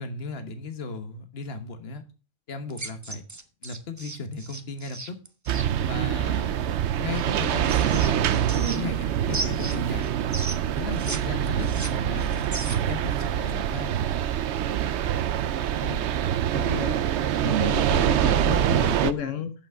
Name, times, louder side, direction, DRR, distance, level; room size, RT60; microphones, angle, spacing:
voice 1, 0.0-2.0 2.5-3.2 3.6-5.2 5.8-10.1 10.7-12.4 12.9-14.0, left 3 dB, 55° left, 8 dB, 1.4 m, -36 dB
sound 1, 2.7-5.7 7.2-9.0 9.3-11.2 11.5-13.0, right 2 dB, 20° right, 0.6 m, -36 dB
sound 2, 5.5-19.1, right 10 dB, 70° right, 0.9 m, -25 dB
voice 2, 15.8-16.1 16.5-17.0 17.4-19.5, left 7 dB, 85° left, 9 dB, 1.2 m, -32 dB
8.0 x 7.1 x 4.7 m, 0.33 s
omnidirectional pair, 1.3 m